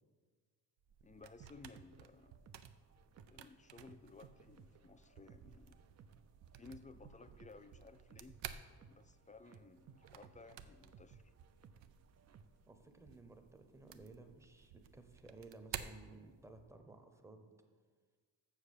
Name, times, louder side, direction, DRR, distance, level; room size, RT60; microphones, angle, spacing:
sound 1, 0.8-16.8, right 9 dB, 85° right, 0.6 m, -54 dB
voice 1, 1.0-2.3 3.3-5.8 6.6-8.4 8.9-11.3, left 3 dB, 20° left, 10 dB, 0.3 m, -58 dB
sound 2, 1.4-12.7, right 6 dB, 40° right, 0.5 m, -63 dB
voice 2, 12.6-17.5, right 3 dB, 5° right, 6 dB, 0.8 m, -56 dB
7.5 x 6.9 x 6.6 m, 1.5 s
wide cardioid pair, 120°, 43 cm